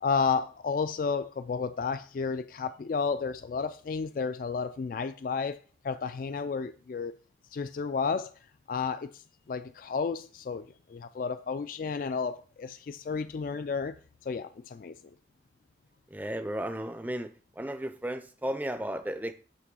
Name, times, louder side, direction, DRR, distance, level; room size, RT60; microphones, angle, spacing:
voice 1, 0.0-5.6 5.8-7.1 7.5-8.3 8.7-14.0 14.2-14.9, left 5 dB, 45° left, 0.3 m, -32 dB
voice 2, 16.1-17.3 17.6-19.3, right 1 dB, 10° right, 0.5 m, -34 dB
8.4 x 3.1 x 6.1 m
head